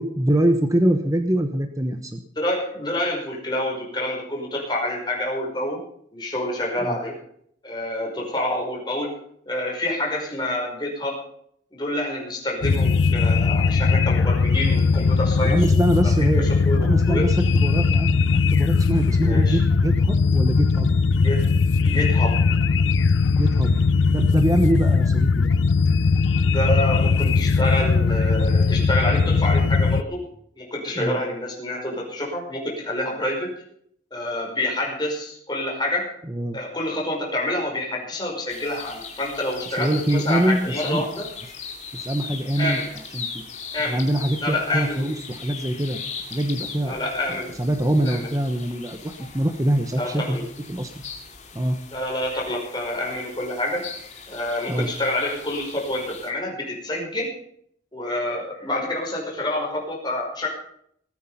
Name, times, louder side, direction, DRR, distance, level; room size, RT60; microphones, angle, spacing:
voice 1, 0.0-2.2 6.8-7.0 15.4-16.5 16.8-18.2 18.5-20.9 23.3-23.8 24.1-25.5 31.0-31.2 36.3-36.6 39.7-41.0 41.9-42.8 43.1-43.4 43.9-46.0 46.3-46.9 47.6-50.4 50.7-50.9 51.5-51.8 54.7-54.9, right 1 dB, 20° right, 5 dB, 1.0 m, -24 dB
voice 2, 2.4-5.8 6.1-7.1 7.6-9.2 9.5-11.2 11.7-17.2 19.1-19.6 21.2-21.6 21.8-22.4 26.4-30.2 30.6-33.5 34.1-36.1 36.5-41.3 42.6-43.0 43.7-44.0 44.4-45.1 46.8-47.6 48.0-48.3 50.0-50.4 51.9-53.8 54.3-57.3 57.9-60.5, left 1 dB, 25° left, -1 dB, 5.4 m, -27 dB
sound 1, 12.6-30.0, left 4 dB, 90° left, 0.6 m, -19 dB
sound 2, 38.5-56.3, left 6 dB, 40° left, 2.6 m, -39 dB
20.0 x 9.4 x 5.6 m, 0.67 s
head